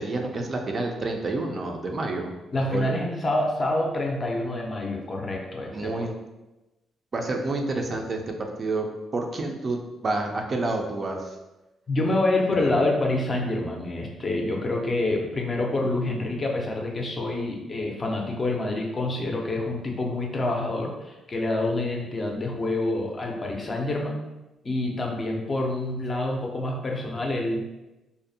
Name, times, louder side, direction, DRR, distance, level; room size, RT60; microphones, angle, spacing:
voice 1, 0.0-2.4 2.7-2.9 5.7-6.1 7.1-8.9 9.1-11.3 12.6-12.7, right 2 dB, 40° right, 2 dB, 0.3 m, -29 dB
voice 2, 2.5-6.1 11.9-24.2 24.6-27.8, left 2 dB, 35° left, 0 dB, 0.4 m, -27 dB
2.5 x 2.0 x 2.6 m, 1.0 s
cardioid pair, 90°, 0 cm